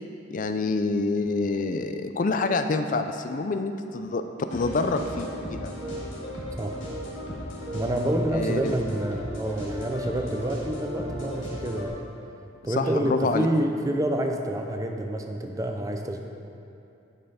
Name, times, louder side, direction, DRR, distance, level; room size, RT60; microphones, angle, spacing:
voice 1, 0.3-4.2 4.5-5.7 8.3-8.8 12.8-13.5, left 3 dB, 45° left, 8 dB, 0.4 m, -27 dB
sound 1, 4.5-11.9, equal, 85° left, 2.1 m, -35 dB
voice 2, 7.7-12.0 12.6-16.2, right 1 dB, 15° right, 3 dB, 0.5 m, -28 dB
10.5 x 5.5 x 4.1 m, 2.6 s
head